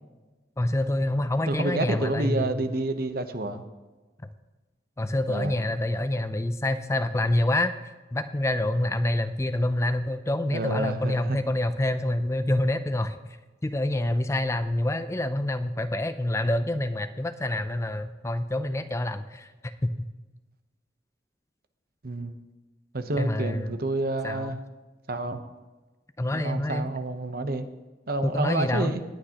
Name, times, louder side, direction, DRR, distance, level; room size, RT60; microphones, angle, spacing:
voice 1, 0.6-2.7 5.0-7.7 8.1-13.2 13.6-19.5 19.8-19.9 23.2-23.7 24.2-24.6 26.2-26.9 28.2-29.0, left 1 dB, 15° left, 10 dB, 0.4 m, -27 dB
voice 2, 1.5-3.6 5.3-5.5 10.5-11.4 22.0-22.4 22.9-24.6 25.1-25.4 26.3-27.7 28.1-29.0, right 2 dB, 55° right, 8 dB, 0.9 m, -29 dB
19.0 x 8.7 x 2.9 m, 1.2 s
head